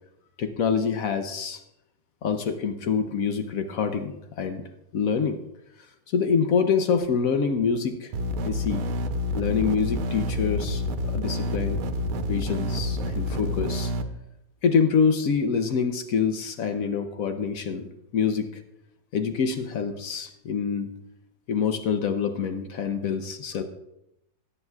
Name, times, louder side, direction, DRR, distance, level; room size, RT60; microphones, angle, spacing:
voice 1, 0.4-1.6 2.2-4.6 4.9-5.4 6.1-8.1 8.4-8.8 9.3-11.8 12.3-13.9 14.6-18.6 19.1-20.9 21.5-23.6, left 6 dB, 70° left, 7 dB, 0.8 m, -26 dB
sound 1, 8.1-14.0, left 1 dB, 90° right, 1.6 m, -28 dB
17.0 x 8.2 x 2.3 m, 0.83 s
omnidirectional pair, 2.3 m